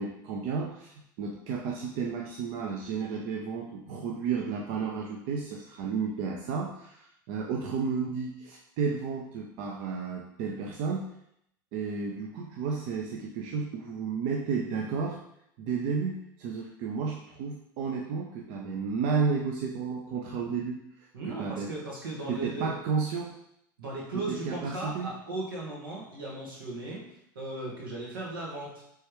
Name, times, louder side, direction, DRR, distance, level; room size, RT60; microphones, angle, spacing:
voice 1, 0.0-11.1 11.7-15.2 15.6-21.7 22.3-23.3 24.1-25.1, right 5 dB, 60° right, 0 dB, 0.6 m, -32 dB
voice 2, 21.1-22.8 23.8-27.1 27.3-28.8, right 2 dB, 90° right, -3 dB, 1.6 m, -37 dB
4.6 x 3.4 x 3.1 m, 0.74 s
hypercardioid pair, 95°, 11 cm